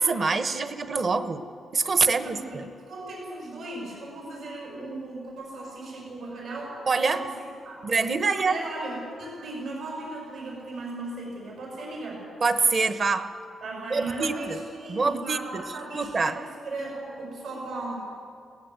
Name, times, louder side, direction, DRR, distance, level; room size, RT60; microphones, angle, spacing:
voice 1, 0.0-1.5 1.7-2.7 6.9-7.2 7.8-8.6 12.4-13.3 13.9-14.6 14.9-15.6 15.9-16.4, right 4 dB, 35° right, 10 dB, 1.1 m, -25 dB
voice 2, 2.0-6.8 7.0-7.3 7.6-7.9 8.2-12.3 13.6-18.0, right 2 dB, 65° right, -2 dB, 6.7 m, -36 dB
22.0 x 18.5 x 7.8 m, 2.4 s
wide cardioid pair, 150°, 0 cm